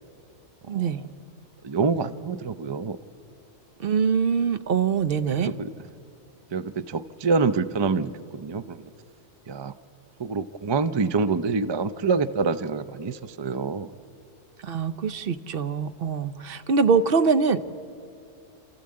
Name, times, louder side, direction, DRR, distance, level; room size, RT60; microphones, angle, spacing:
voice 1, 0.7-1.0 3.8-5.5 14.6-17.7, right 5 dB, 55° right, 12 dB, 0.8 m, -23 dB
voice 2, 1.6-3.0 5.3-5.7 6.5-8.9 9.5-9.7 10.2-13.9, right 4 dB, 40° right, 13 dB, 0.3 m, -26 dB
28.0 x 14.0 x 8.6 m, 2.6 s
omnidirectional pair, 1.2 m